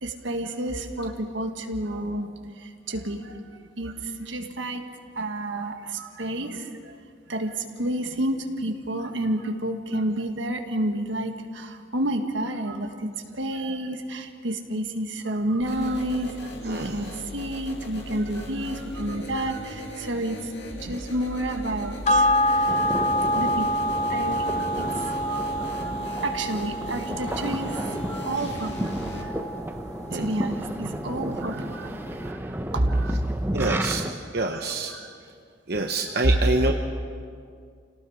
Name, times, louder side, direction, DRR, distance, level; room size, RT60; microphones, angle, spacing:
voice 1, 0.0-2.3 2.9-3.9 4.2-4.8 5.2-6.9 7.3-12.9 13.3-20.4 20.9-23.1 23.3-23.7 24.1-25.9 26.2-29.3 30.1-32.0 32.2-33.2 34.5-34.6 34.9-35.1 35.7-35.8, right 1 dB, 75° right, 5 dB, 1.7 m, -30 dB
sound 1, 15.6-29.2, equal, 60° left, 2.5 m, -39 dB
voice 2, 16.6-17.1 20.9-21.0 30.1-30.3 33.5-34.9 35.7-36.7, right 2 dB, 50° right, 3 dB, 1.0 m, -27 dB
sound 2, 22.1-30.8 31.2-31.3, equal, 35° left, 0.6 m, -27 dB
sound 3, 22.7-34.1, right 1 dB, 10° right, 0.8 m, -33 dB
29.0 x 18.5 x 5.0 m, 2.2 s
head